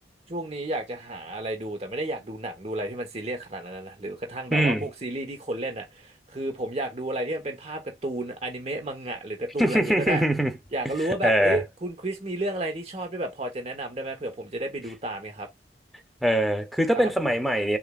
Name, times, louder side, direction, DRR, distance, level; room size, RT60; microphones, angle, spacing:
voice 1, 0.3-10.2 10.7-15.5 16.9-17.1, right 1 dB, 35° right, 1.1 m, -32 dB
voice 2, 4.5-4.8 9.6-10.5 11.2-11.6 16.2-17.8, right 1 dB, ahead, 0.6 m, -22 dB
6.4 x 2.5 x 2.4 m
head